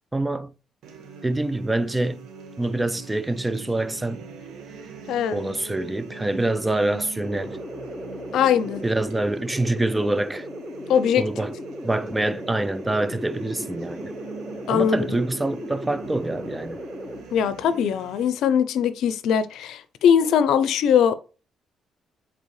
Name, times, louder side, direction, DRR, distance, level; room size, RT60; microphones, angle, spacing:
voice 1, 0.1-0.5 1.2-2.3 2.6-4.2 5.3-7.6 8.8-10.5 11.2-11.5 11.8-14.1 14.7-16.8, right 2 dB, 15° right, 0.4 m, -25 dB
sound 1, 0.8-18.3, right 5 dB, 75° right, 1.5 m, -42 dB
voice 2, 5.1-5.4 8.3-8.8 10.9-11.2 14.7-15.2 17.3-21.1, left 8 dB, 80° left, 0.5 m, -21 dB
sound 2, 7.2-17.2, equal, 5° left, 0.9 m, -37 dB
8.1 x 4.2 x 3.2 m
cardioid pair, 90°, 0 cm